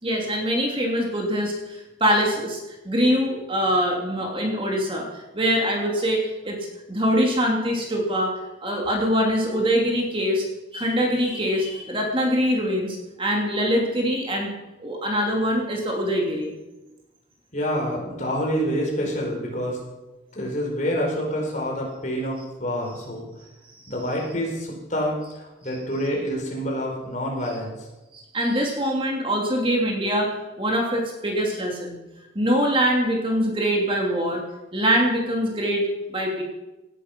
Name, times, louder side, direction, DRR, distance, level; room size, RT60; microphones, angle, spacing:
voice 1, 0.0-6.6 6.9-10.5 10.7-14.5 14.8-16.5 28.1-32.0 32.3-34.4 34.7-36.4, equal, 30° right, 0 dB, 2.8 m, -23 dB
voice 2, 17.5-19.8 20.3-23.3 23.9-27.9, equal, 40° left, -1 dB, 4.7 m, -27 dB
18.0 x 11.0 x 6.0 m, 1.0 s
head